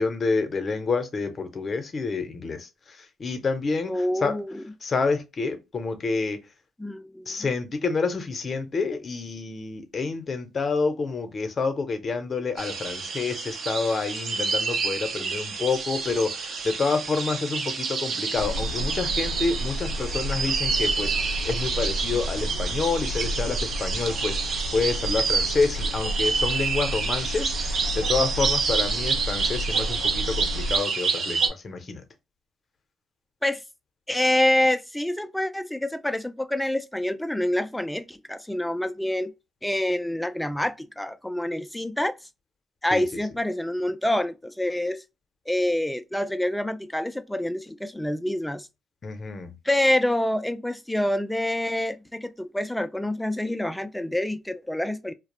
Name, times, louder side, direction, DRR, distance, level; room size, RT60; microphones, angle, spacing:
voice 1, 0.0-4.4 4.8-6.4 7.3-32.0 42.9-43.0 49.0-49.6, left 4 dB, 40° left, 0.6 m, -28 dB
voice 2, 3.9-4.6 6.8-7.3 15.2-15.3 33.4-33.6 34.1-39.3 39.6-42.2 42.8-45.0 45.5-48.7 49.6-55.1, left 1 dB, 5° left, 0.3 m, -27 dB
sound 1, 12.6-31.5, right 5 dB, 60° right, 0.5 m, -28 dB
sound 2, 18.3-30.8, equal, 85° left, 0.4 m, -32 dB
2.3 x 2.0 x 2.8 m
cardioid pair, 90°, 0 cm